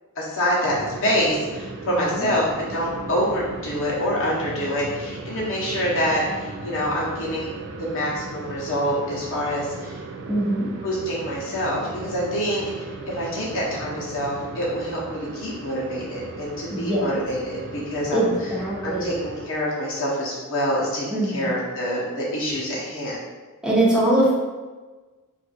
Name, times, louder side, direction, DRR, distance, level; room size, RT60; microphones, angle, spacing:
voice 1, 0.2-10.0 10.8-12.6 13.1-18.3 18.8-23.2, equal, 60° left, -6 dB, 0.9 m, -26 dB
sound 1, 0.6-19.5, right 3 dB, 55° right, 0.4 m, -37 dB
voice 2, 1.9-2.3 10.3-10.7 16.7-17.1 18.1-19.2 21.1-21.6 23.6-24.3, right 1 dB, 5° right, -7 dB, 0.8 m, -22 dB
2.5 x 2.4 x 4.1 m, 1.3 s
head